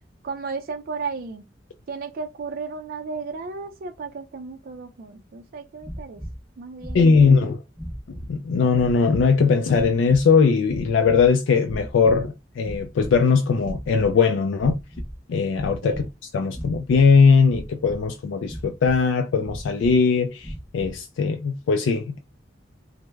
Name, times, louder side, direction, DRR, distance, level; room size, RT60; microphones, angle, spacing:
voice 1, 0.2-1.5 1.9-6.2 6.6-7.5 15.8-16.0, right 4 dB, 50° right, 0.4 m, -34 dB
sound 1, 5.8-6.4 6.8-7.4 7.7-8.4 8.7-9.3 9.7-10.2 10.7-11.3 11.6-12.3 12.6-13.2 13.6-14.1 14.5-15.2 15.5-16.1 16.5-17.1 17.5-18.1 18.4-19.0 19.4-20.0 20.4-21.0, equal, ahead, 0.7 m, -37 dB
voice 2, 6.9-7.6 8.1-14.8 15.3-16.1 16.3-22.2, left 5 dB, 70° left, 0.3 m, -19 dB
3.2 x 2.0 x 3.3 m
head